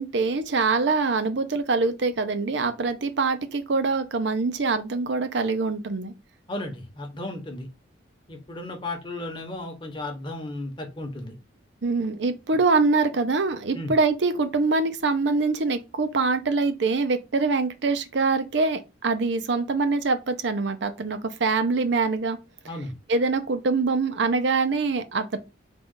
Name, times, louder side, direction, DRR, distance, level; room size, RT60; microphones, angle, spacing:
voice 1, 0.0-6.1 11.8-22.4 23.1-25.4, right 3 dB, 60° right, 0.6 m, -24 dB
voice 2, 6.5-7.7 8.3-11.3 13.7-13.9 22.7-22.9, left 2 dB, 25° left, 0.9 m, -34 dB
3.8 x 2.3 x 3.6 m
head